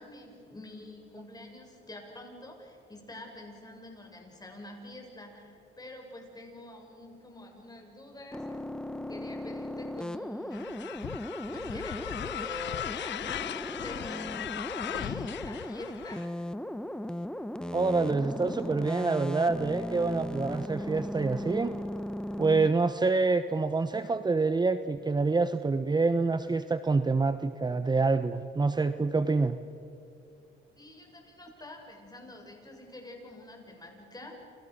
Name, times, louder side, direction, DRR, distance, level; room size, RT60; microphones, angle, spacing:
voice 1, 0.0-8.6 8.9-10.7 11.2-16.4 30.7-34.3, left 1 dB, 20° left, 2 dB, 7.4 m, -47 dB
sound 1, 8.3-22.7, left 1 dB, 5° left, 1.0 m, -37 dB
sound 2, 10.5-16.3, left 11 dB, 65° left, 0.8 m, -38 dB
voice 2, 17.7-21.7 22.4-29.6, right 3 dB, 20° right, 11 dB, 0.9 m, -27 dB
29.5 x 28.5 x 6.6 m, 2.5 s
cardioid pair, 90°, 20 cm